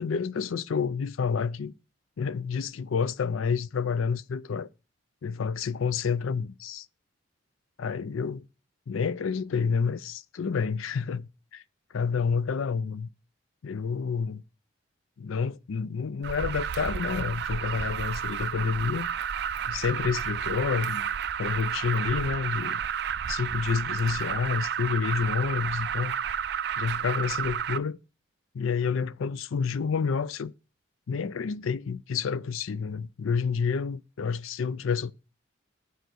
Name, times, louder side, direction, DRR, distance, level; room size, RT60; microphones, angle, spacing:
voice 1, 0.0-1.7 2.2-4.7 5.2-6.9 7.8-8.4 8.9-11.6 11.9-13.1 13.6-14.4 15.2-19.1 19.7-21.1 21.4-22.8 23.3-26.1 26.8-28.0 28.5-30.5 31.1-35.1, left 5 dB, 90° left, 0.5 m, -29 dB
Alarm, 16.2-27.8, right 8 dB, 55° right, 0.4 m, -31 dB
9.3 x 5.0 x 6.1 m
head